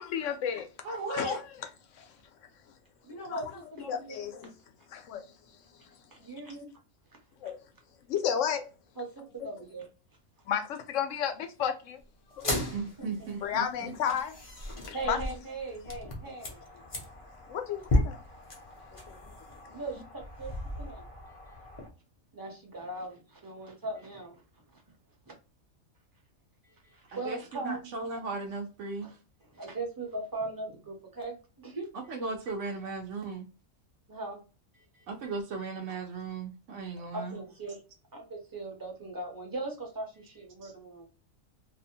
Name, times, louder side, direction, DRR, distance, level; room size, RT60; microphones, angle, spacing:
voice 1, 0.0-0.7 1.1-1.4 3.1-3.5 3.9-4.5 4.9-5.2 7.4-7.6 8.1-8.7 10.5-12.0 12.3-12.4 13.4-14.4 14.9-15.2 17.5-18.2 19.1-19.3, left 8 dB, 70° left, 0.9 m, -32 dB
voice 2, 0.8-1.4 12.7-13.6 27.2-29.1 32.1-33.5 35.1-37.4 40.6-40.7, right 4 dB, 70° right, 0.9 m, -36 dB
voice 3, 3.0-4.3 6.2-6.7 9.0-9.9 12.4-13.3 14.9-16.6 19.7-21.0 22.3-24.4 24.7-24.8 26.8-27.9 29.0-29.1 29.5-31.9 34.1-34.4 34.7-35.1 37.1-37.8 38.1-41.1, right 2 dB, 20° right, 0.6 m, -39 dB
sound 1, 12.3-21.9, left 1 dB, 35° left, 0.5 m, -36 dB
2.7 x 2.1 x 2.6 m
omnidirectional pair, 1.4 m